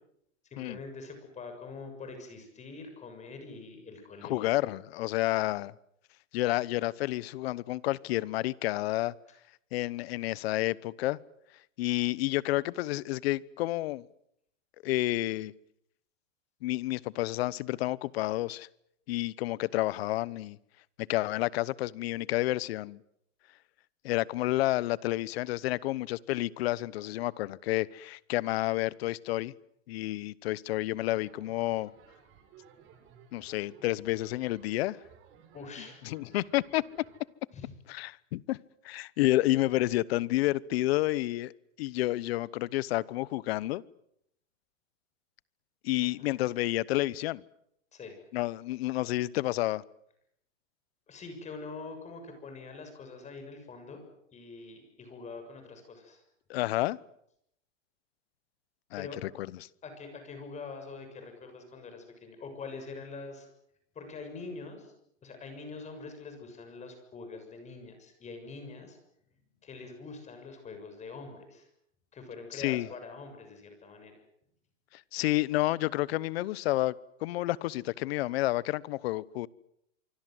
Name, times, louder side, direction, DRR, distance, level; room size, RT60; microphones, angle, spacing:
voice 1, 0.5-4.5 35.5-36.0 37.5-37.7 46.0-46.4 47.9-48.2 51.1-54.0 54.3-56.2 59.0-59.2 59.8-63.5 63.9-64.9 65.2-69.0 69.6-71.7 72.1-74.2, left 4 dB, 20° left, 6.8 m, -44 dB
voice 2, 4.2-5.7 6.3-9.1 9.7-11.2 11.8-14.0 14.8-15.5 16.6-18.7 19.1-20.6 21.0-23.0 24.0-29.5 29.9-31.9 33.3-35.0 36.0-36.8 37.9-38.6 38.8-41.5 41.8-43.8 45.8-47.4 48.3-49.8 56.5-57.0 58.9-59.5 72.5-72.9 75.1-76.9 77.2-79.5, left 17 dB, 50° left, 1.1 m, -30 dB
sound 1, 31.2-37.2, right 7 dB, 30° right, 5.6 m, -58 dB
26.0 x 24.5 x 7.8 m
hypercardioid pair, 150°, 38 cm